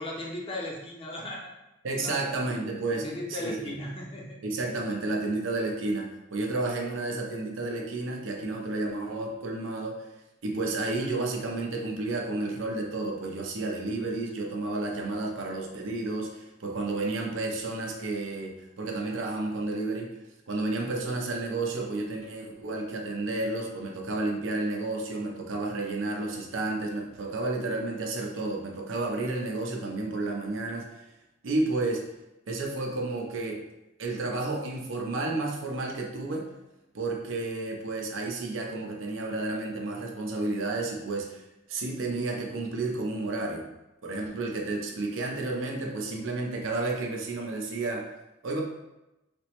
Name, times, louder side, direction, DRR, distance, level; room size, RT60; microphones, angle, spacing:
voice 1, 0.0-1.5 1.9-2.4 2.9-4.4, left 1 dB, 30° left, -2 dB, 0.5 m, -37 dB
voice 2, 1.8-3.8 4.4-10.1 10.4-20.1 20.5-30.9 31.4-32.0 32.5-33.6 34.0-36.5 36.9-43.7 44.0-48.1 48.4-48.6, right 2 dB, 85° right, 0 dB, 0.5 m, -31 dB
3.3 x 2.0 x 2.9 m, 0.95 s
head